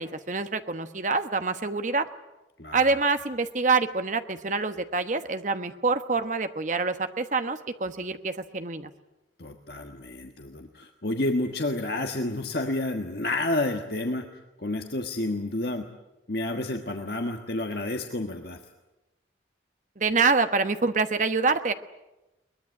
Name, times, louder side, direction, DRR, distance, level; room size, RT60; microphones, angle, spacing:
voice 1, 0.0-2.1 2.7-8.9 20.0-21.7, right 4 dB, 40° right, 9 dB, 1.2 m, -26 dB
voice 2, 2.6-2.9 9.4-14.2 14.6-15.9 16.3-18.6, left 2 dB, 55° left, 4 dB, 1.5 m, -30 dB
22.5 x 20.0 x 9.6 m, 1.0 s
head